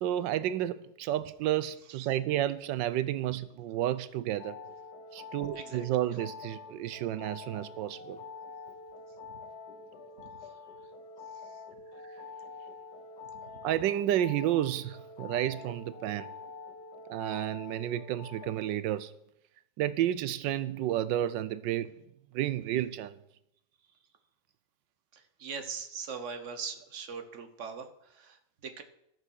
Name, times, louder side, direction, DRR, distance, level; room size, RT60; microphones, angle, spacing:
voice 1, 0.0-4.6 5.1-8.2 13.6-16.3 17.1-19.1 19.8-21.9 22.3-23.2, right 12 dB, 85° right, 1.3 m, -31 dB
sound 1, 4.4-18.7, left 4 dB, 65° left, 1.4 m, -46 dB
voice 2, 5.5-5.9 9.3-9.4 10.2-10.5 11.3-11.6 13.3-13.6 25.1-28.8, right 5 dB, 50° right, 1.2 m, -42 dB
12.5 x 6.5 x 6.3 m
omnidirectional pair, 1.9 m